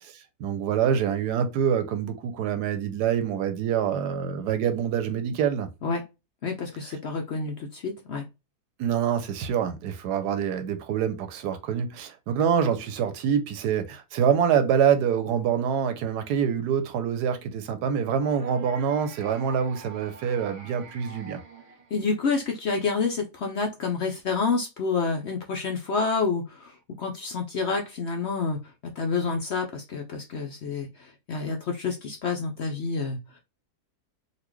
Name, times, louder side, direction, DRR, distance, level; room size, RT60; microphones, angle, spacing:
voice 1, 0.0-5.7 8.8-21.4, right 8 dB, 85° right, 1.2 m, -26 dB
voice 2, 6.4-8.2 21.9-28.6 29.0-33.2, left 4 dB, 60° left, 0.7 m, -28 dB
sound 1, 18.2-22.4, right 5 dB, 50° right, 0.4 m, -46 dB
4.0 x 2.4 x 3.1 m
omnidirectional pair, 1.7 m